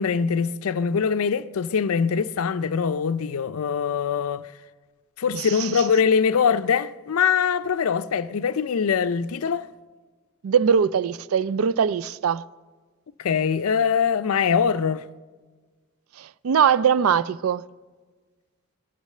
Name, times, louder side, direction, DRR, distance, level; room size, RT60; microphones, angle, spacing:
voice 1, 0.0-4.5 5.2-9.7 13.2-15.0, left 6 dB, 75° left, 0.4 m, -23 dB
voice 2, 5.3-5.7 10.4-12.4 16.2-17.6, right 7 dB, 75° right, 0.4 m, -21 dB
19.0 x 11.5 x 6.6 m
head